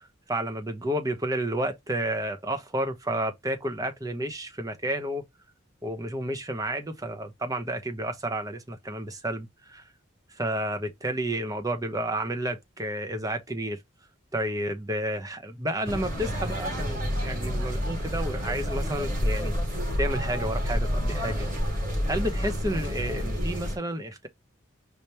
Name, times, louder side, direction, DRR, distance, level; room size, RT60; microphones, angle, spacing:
voice 1, 0.3-5.2 5.8-9.8 10.3-13.8 14.3-19.5 20.0-21.5 22.1-24.3, right 1 dB, 15° right, 0.9 m, -31 dB
sound 1, 15.8-23.8, equal, 45° right, 3.5 m, -29 dB
5.1 x 3.2 x 2.9 m
head